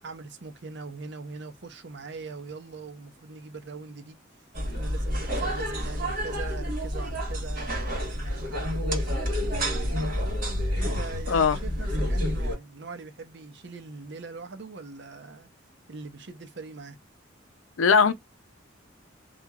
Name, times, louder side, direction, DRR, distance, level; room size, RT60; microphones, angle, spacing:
voice 1, 0.0-4.2 4.7-9.9 10.7-15.5 15.9-17.0, right 4 dB, 60° right, 0.7 m, -41 dB
sound 1, 4.5-12.5, equal, 45° right, 1.6 m, -29 dB
voice 2, 11.3-11.6 17.8-18.1, left 5 dB, 85° left, 0.5 m, -19 dB
2.8 x 2.4 x 2.3 m
head